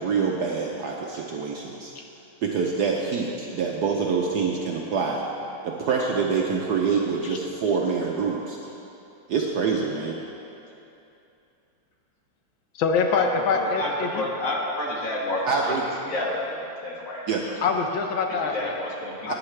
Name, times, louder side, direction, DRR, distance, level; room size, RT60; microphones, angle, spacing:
voice 1, 0.0-1.9 2.4-5.2 5.6-8.6 9.3-10.2 15.5-15.8 17.3-17.4 19.3-19.4, right 5 dB, 65° right, -1 dB, 1.0 m, -25 dB
voice 2, 12.8-14.3 17.6-18.8 19.3-19.4, left 5 dB, 75° left, 4 dB, 1.4 m, -24 dB
voice 3, 13.5-15.7 16.1-17.2 18.4-19.3, left 1 dB, 45° left, -3 dB, 1.6 m, -30 dB
13.5 x 9.5 x 3.3 m, 2.8 s
omnidirectional pair, 2.3 m